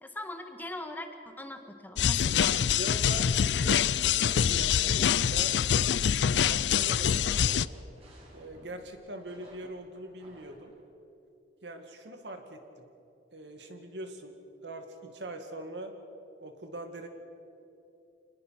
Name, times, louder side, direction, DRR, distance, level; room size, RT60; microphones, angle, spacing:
voice 1, 0.0-1.1 1.4-2.6, left 1 dB, 10° left, 6 dB, 1.6 m, -41 dB
sound 1, 2.0-7.7, left 8 dB, 85° left, 0.5 m, -25 dB
voice 2, 2.7-5.6 6.4-7.6 8.3-10.7 11.6-12.9 13.3-14.3 14.6-15.9 16.4-17.1, right 1 dB, 75° right, 6 dB, 2.3 m, -42 dB
sound 2, 5.1-10.7, right 1 dB, 35° right, 6.6 m, -56 dB
26.0 x 20.0 x 6.0 m, 2.8 s
head